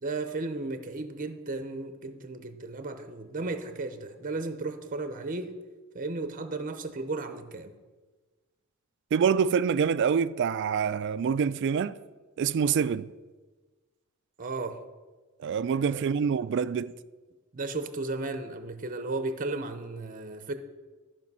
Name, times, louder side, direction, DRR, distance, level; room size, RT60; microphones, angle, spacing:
voice 1, 0.0-5.6 5.9-7.7 14.4-14.8 15.9-16.2 17.5-20.5, right 3 dB, 40° right, 0.7 m, -34 dB
voice 2, 9.1-11.9 12.4-13.1 15.4-16.9, right 6 dB, 60° right, 0.3 m, -26 dB
13.5 x 5.2 x 5.4 m
head